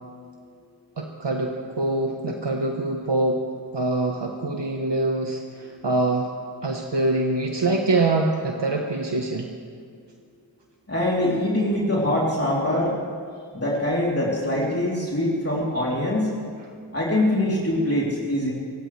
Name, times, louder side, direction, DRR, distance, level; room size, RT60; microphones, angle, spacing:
voice 1, 1.0-3.4 3.7-6.3 6.6-9.5, right 2 dB, 65° right, 1 dB, 1.3 m, -24 dB
voice 2, 10.9-13.0 13.5-16.3 16.9-18.5, left 1 dB, 30° left, -5 dB, 3.4 m, -23 dB
26.0 x 16.5 x 3.4 m, 2.2 s
wide cardioid pair, 50°, 46 cm